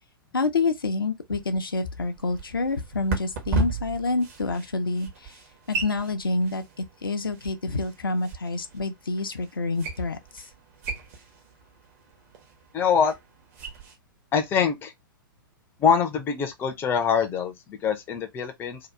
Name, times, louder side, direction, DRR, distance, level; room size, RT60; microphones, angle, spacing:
voice 1, 0.3-5.4 5.7-10.5, left 3 dB, 75° left, 0.6 m, -28 dB
sound 1, 1.3-13.9, right 3 dB, 45° right, 1.0 m, -36 dB
voice 2, 12.7-13.2 14.3-14.9 15.8-18.8, left 6 dB, 20° left, 0.6 m, -24 dB
2.8 x 2.3 x 3.3 m
figure-of-eight pair, 105°, 12 cm